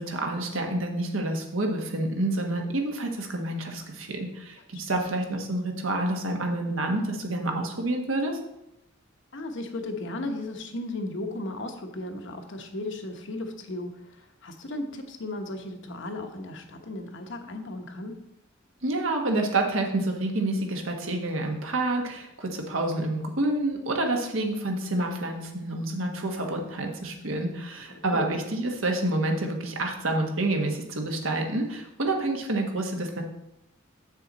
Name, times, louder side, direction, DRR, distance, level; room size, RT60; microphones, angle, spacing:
voice 1, 0.0-8.4 18.8-33.2, right 2 dB, 75° right, 2 dB, 1.4 m, -28 dB
voice 2, 4.7-5.1 9.3-18.2 27.9-28.3, left 2 dB, 65° left, 5 dB, 1.0 m, -35 dB
7.6 x 6.7 x 4.1 m, 0.87 s
head